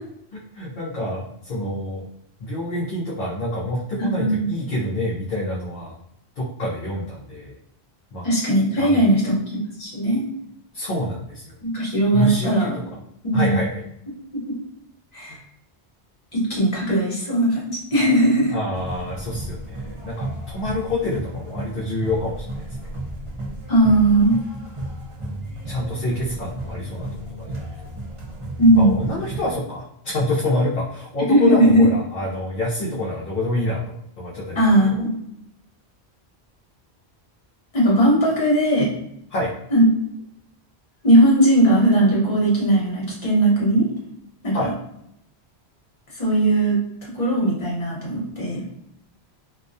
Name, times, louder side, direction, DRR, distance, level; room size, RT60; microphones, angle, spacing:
voice 1, 0.3-2.1 2.4-6.0 6.4-7.5 8.1-8.2 8.8-9.0 10.7-11.5 12.1-12.8 13.3-13.8 15.3-15.4 18.5-22.7 25.7-27.1 27.4-27.7 28.7-34.6 34.9-35.0 39.3-39.5 44.5-44.7, left 1 dB, 60° left, -5 dB, 0.6 m, -27 dB
voice 2, 4.1-4.5 8.2-9.4 9.8-10.2 11.6-12.7 13.2-13.6 14.3-14.5 15.1-15.4 16.3-18.5 23.7-24.4 28.6-29.1 31.3-31.9 34.5-35.2 37.7-38.9 39.7-39.8 41.0-43.9 44.4-44.7 46.1-48.6, right 1 dB, 40° left, -5 dB, 1.0 m, -18 dB
sound 1, 18.7-29.6, right 1 dB, 40° right, 0.5 m, -34 dB
2.3 x 2.2 x 2.6 m, 0.76 s
omnidirectional pair, 1.1 m